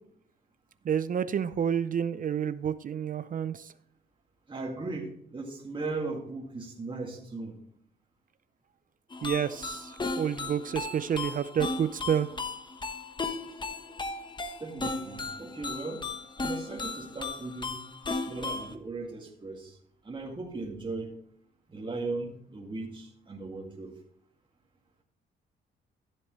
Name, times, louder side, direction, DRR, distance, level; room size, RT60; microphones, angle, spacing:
voice 1, 0.9-3.7 9.2-12.3, right 8 dB, 45° right, 14 dB, 0.5 m, -29 dB
voice 2, 4.5-7.6 14.6-16.0 16.4-17.8 18.3-19.8 20.0-21.1 21.7-23.9, right 3 dB, 25° right, -2 dB, 2.2 m, -37 dB
sound 1, 9.1-18.7, left 3 dB, 25° left, 1.1 m, -36 dB
14.0 x 7.5 x 3.2 m, 0.68 s
cardioid pair, 90°, 20 cm